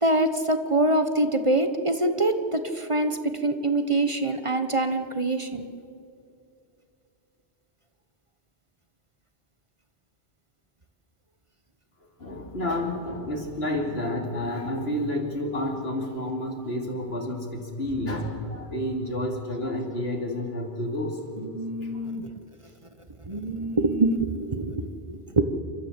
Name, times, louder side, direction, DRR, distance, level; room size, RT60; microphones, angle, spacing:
voice 1, 0.0-5.7 21.4-22.3 23.3-24.7 25.1-25.4, right 2 dB, 30° right, 9 dB, 1.2 m, -25 dB
voice 2, 12.2-21.2 21.9-22.0, left 1 dB, 60° left, 2 dB, 3.3 m, -30 dB
28.5 x 13.5 x 8.2 m, 2.6 s
omnidirectional pair, 1.2 m